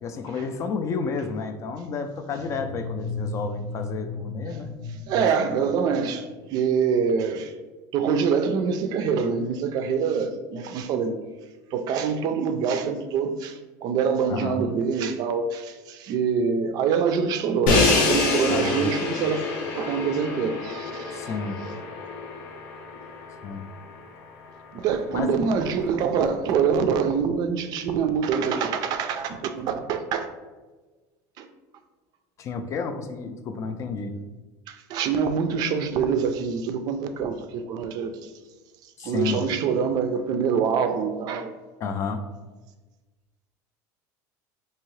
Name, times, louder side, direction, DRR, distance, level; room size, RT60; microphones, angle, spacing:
voice 1, 0.0-4.7 14.3-14.6 18.5-18.9 21.1-21.6 23.4-23.6 25.1-25.3 32.4-34.1 39.0-39.4 41.8-42.2, left 4 dB, 35° left, 7 dB, 0.3 m, -31 dB
sound 1, 2.3-6.4, left 3 dB, 90° left, 1.1 m, -35 dB
voice 2, 5.1-7.5 7.9-11.2 11.7-19.5 19.7-21.2 24.7-30.3 31.4-31.5 34.7-38.3 39.0-41.6, right 6 dB, 55° right, 8 dB, 0.4 m, -25 dB
Crash cymbal, 17.7-23.6, left 3 dB, 70° left, 0.8 m, -26 dB
3.6 x 2.7 x 3.1 m, 1.2 s
supercardioid pair, 125°, 8 cm